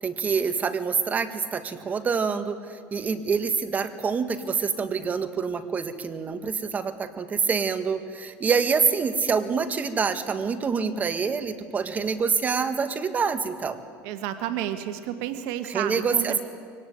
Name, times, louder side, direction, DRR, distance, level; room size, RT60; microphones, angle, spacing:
voice 1, 0.0-13.8 15.7-16.4, right 5 dB, 30° right, 9 dB, 1.7 m, -26 dB
voice 2, 14.0-16.4, right 11 dB, 75° right, 9 dB, 1.5 m, -31 dB
24.0 x 18.0 x 9.5 m, 2.1 s
supercardioid pair, 115°, 6 cm